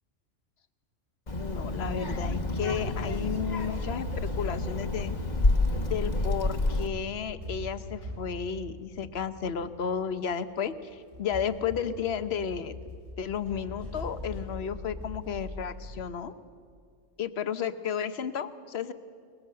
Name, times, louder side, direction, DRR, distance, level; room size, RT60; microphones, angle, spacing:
voice 1, 1.3-5.1 5.8-12.7 13.2-16.3 17.2-18.9, left 7 dB, 60° left, 11 dB, 1.1 m, -33 dB
Child speech kid speaking, 1.3-6.9, left 2 dB, 35° left, 1.4 m, -29 dB
sound 1, 2.8-16.0, left 1 dB, 60° right, 5.8 m, -42 dB
22.0 x 20.5 x 7.6 m, 2.1 s
omnidirectional pair, 1.3 m